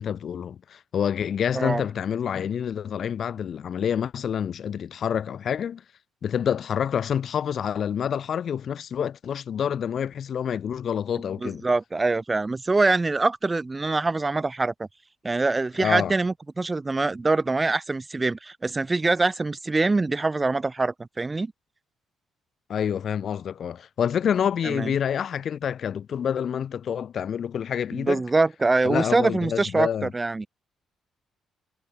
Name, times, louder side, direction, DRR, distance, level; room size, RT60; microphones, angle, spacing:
voice 1, 0.0-5.8 6.2-11.6 15.8-16.1 22.7-28.2 28.8-30.1, left 8 dB, 60° left, 0.5 m, -27 dB
voice 2, 11.4-14.9 15.2-21.5 24.6-24.9 27.9-30.5, right 3 dB, 20° right, 0.3 m, -24 dB
cardioid pair, 90°, 0 cm